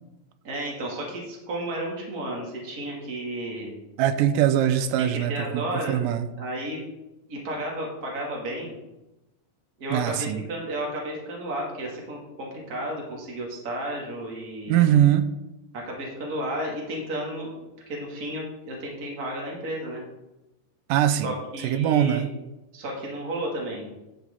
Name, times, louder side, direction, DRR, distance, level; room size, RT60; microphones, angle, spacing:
voice 1, 0.4-3.7 5.0-6.9 7.3-8.7 9.8-14.9 15.7-17.5 17.9-20.0 21.2-22.3 22.7-23.9, right 1 dB, 30° right, -2 dB, 2.7 m, -33 dB
voice 2, 4.0-6.3 9.9-10.4 14.7-15.3 20.9-21.3 21.6-22.3, right 11 dB, 85° right, 9 dB, 2.3 m, -22 dB
12.5 x 7.3 x 3.8 m, 0.99 s
omnidirectional pair, 3.8 m